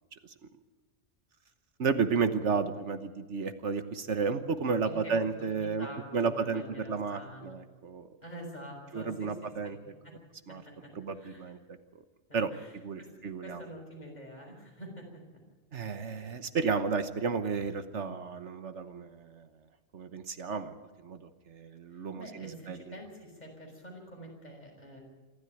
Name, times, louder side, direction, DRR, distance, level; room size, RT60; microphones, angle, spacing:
voice 1, 1.8-5.9 6.1-8.1 8.9-9.8 10.5-10.6 10.9-11.6 12.3-12.5 12.8-13.6 15.7-19.5 19.9-20.7 21.0-22.9, right 5 dB, 70° right, 10 dB, 1.4 m, -32 dB
voice 2, 5.4-7.6 8.2-10.2 10.5-10.9 11.2-11.5 12.3-13.1 13.4-15.2 16.1-16.4 21.9-25.0, equal, 35° left, 1 dB, 6.1 m, -47 dB
25.5 x 13.5 x 9.3 m, 1.3 s
omnidirectional pair, 1.3 m